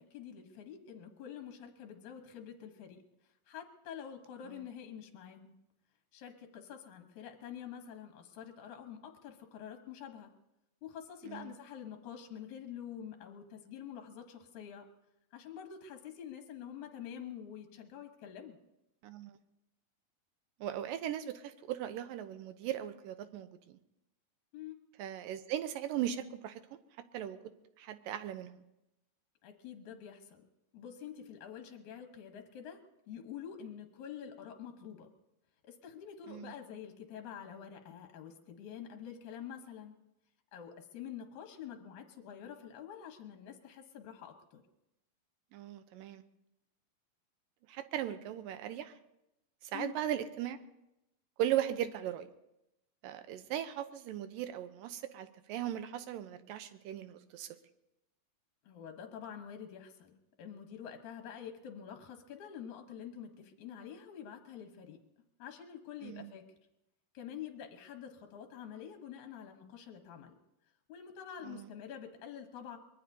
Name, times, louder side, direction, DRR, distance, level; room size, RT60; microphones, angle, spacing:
voice 1, 0.0-3.0 3.5-5.5 6.1-10.3 10.8-14.9 15.3-18.6 24.5-24.8 29.4-30.4 30.7-32.8 33.1-35.1 35.6-40.0 40.5-44.6 49.7-50.0 58.6-65.0 65.4-66.4 67.1-70.3 70.9-72.8, left 8 dB, 65° left, 5 dB, 2.2 m, -47 dB
voice 2, 20.6-23.8 25.0-26.8 27.1-27.4 27.8-28.6 36.3-36.5 45.5-46.2 47.7-49.0 49.6-50.6 51.4-52.3 53.0-57.5 66.0-66.3 71.4-71.7, right 11 dB, 75° right, 10 dB, 2.3 m, -38 dB
24.0 x 21.5 x 2.7 m, 0.89 s
omnidirectional pair, 4.3 m